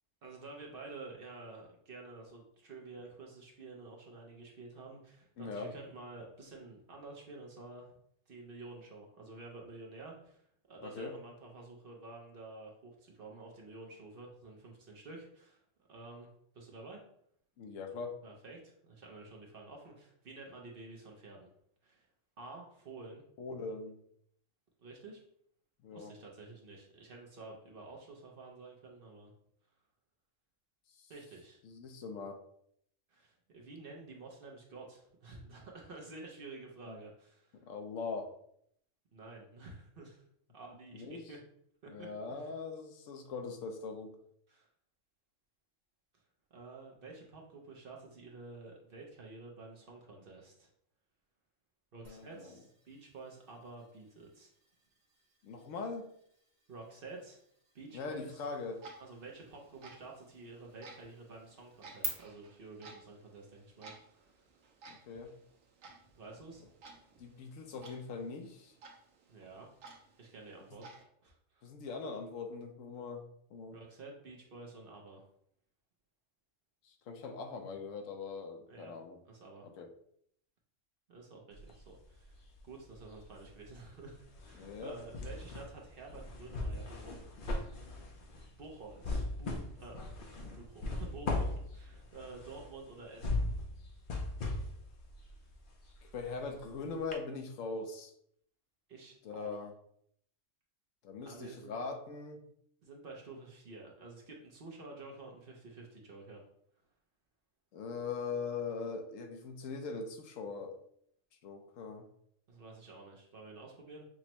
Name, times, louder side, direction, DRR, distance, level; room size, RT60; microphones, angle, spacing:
voice 1, 0.2-7.9 8.3-15.6 15.9-16.3 16.5-17.0 18.2-21.5 21.8-22.1 22.4-23.3 24.8-25.2 25.9-29.3 31.1-31.6 33.1-37.6 39.1-40.3 40.5-41.4 41.8-42.5 44.5-44.7 46.5-50.7 51.9-54.5 56.7-57.4 57.7-58.4 59.0-64.4 66.2-66.6 69.3-69.7 70.2-70.9 71.2-71.6 73.7-75.2 78.7-78.9 79.3-79.7 81.1-87.3 88.6-90.0 90.3-93.5 95.2-95.4 98.9-99.5 101.2-101.8 102.8-106.4 112.5-114.1, right 3 dB, 55° right, -1 dB, 0.8 m, -50 dB
voice 2, 5.4-5.7 10.8-11.1 17.6-18.1 23.4-24.0 25.8-26.1 31.0-31.1 31.6-32.4 36.9-37.0 37.5-38.3 40.9-41.3 41.9-44.2 52.1-52.5 55.4-56.1 57.9-58.8 64.9-65.3 67.2-68.7 71.6-73.2 73.5-73.8 76.8-79.2 79.6-79.9 84.5-85.0 96.1-98.1 99.2-99.7 101.0-102.4 107.7-110.8 111.4-112.1, left 4 dB, 80° left, 5 dB, 1.0 m, -41 dB
sound 1, 52.0-62.1, right 4 dB, 35° right, 1.1 m, -51 dB
Clock, 58.5-71.0, right 3 dB, 85° right, 1.1 m, -57 dB
sound 2, 81.5-82.6 82.9-96.7 97.1-97.2, left 2 dB, 55° left, 0.6 m, -39 dB
6.0 x 2.1 x 2.9 m, 0.69 s
omnidirectional pair, 1.3 m